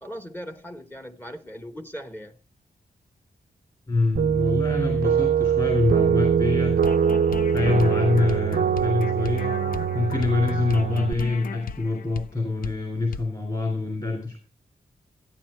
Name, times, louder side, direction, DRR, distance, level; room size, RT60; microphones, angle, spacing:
voice 1, 0.0-2.4 4.6-5.3, equal, 10° left, 1.1 m, -39 dB
voice 2, 3.9-6.8 7.5-9.6 9.9-14.4, left 3 dB, 30° left, 3.5 m, -25 dB
sound 1, 4.2-11.1, right 7 dB, 70° right, 0.6 m, -23 dB
sound 2, 6.8-12.3 12.6-12.8 13.1-13.3, left 6 dB, 60° left, 0.6 m, -36 dB
13.5 x 9.5 x 4.5 m
wide cardioid pair, 105°, 16 cm